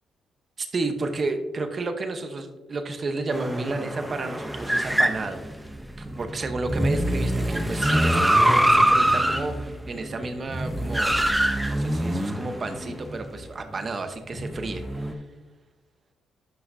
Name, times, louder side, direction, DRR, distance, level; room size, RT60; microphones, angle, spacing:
voice 1, 0.6-5.4 6.0-11.3 11.6-15.2, right 3 dB, 35° right, 7 dB, 0.9 m, -32 dB
sound 1, 3.3-13.2 14.3-15.1, right 1 dB, 5° right, 0.6 m, -24 dB
11.0 x 5.7 x 2.7 m, 1.1 s
cardioid pair, 120°, 0 cm